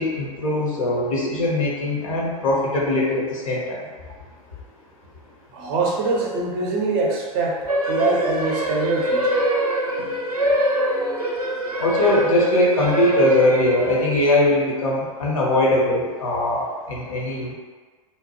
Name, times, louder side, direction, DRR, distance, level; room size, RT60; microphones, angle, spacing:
voice 1, 0.0-3.8 11.8-17.5, left 1 dB, 65° left, -3 dB, 0.8 m, -21 dB
voice 2, 5.5-9.4, right 3 dB, 40° right, 0 dB, 0.5 m, -24 dB
sound 1, 7.7-14.2, equal, 90° right, 0.5 m, -23 dB
2.8 x 2.1 x 2.8 m, 1.5 s
figure-of-eight pair, 90°, 19 cm